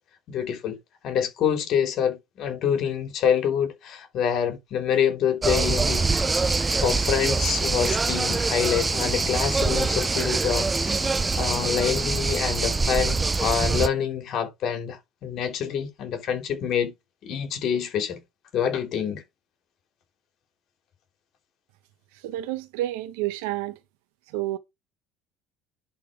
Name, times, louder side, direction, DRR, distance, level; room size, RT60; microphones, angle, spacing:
voice 1, 0.3-0.8 1.0-16.9 17.2-18.2 18.5-19.2, left 8 dB, 50° left, 3.0 m, -26 dB
sound 1, 5.4-13.9, right 3 dB, 15° right, 0.6 m, -24 dB
voice 2, 22.2-23.8 24.3-24.6, right 15 dB, 85° right, 1.3 m, -29 dB
10.5 x 4.1 x 4.8 m
cardioid pair, 120°, 0 cm